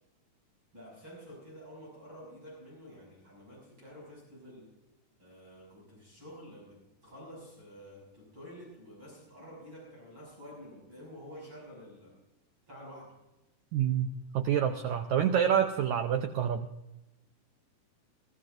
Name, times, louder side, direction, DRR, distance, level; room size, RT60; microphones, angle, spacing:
voice 1, 0.7-4.7 5.2-12.2 12.7-13.1, equal, 35° right, -4 dB, 6.9 m, -49 dB
voice 2, 13.7-14.1 14.3-16.7, right 9 dB, 80° right, 7 dB, 1.7 m, -27 dB
20.5 x 15.5 x 2.6 m, 0.97 s
omnidirectional pair, 4.0 m